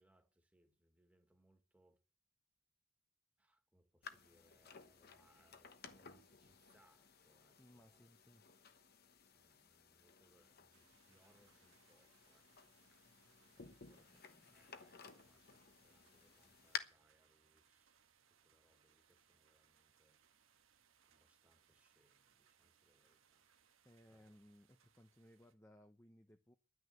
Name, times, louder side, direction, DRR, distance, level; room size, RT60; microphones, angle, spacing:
voice 1, 0.0-2.0 3.4-8.1 9.3-12.5 13.4-14.1 14.5-18.0 18.3-20.6 21.0-23.5 24.1-24.4, right 1 dB, 5° right, 1.9 m, -75 dB
sound 1, 4.0-16.8, left 7 dB, 50° left, 1.1 m, -55 dB
voice 2, 7.6-8.4 13.6-14.7 23.8-26.6, equal, 15° left, 0.7 m, -65 dB
sound 2, 10.7-25.5, right 7 dB, 75° right, 1.6 m, -74 dB
11.0 x 9.6 x 9.3 m
head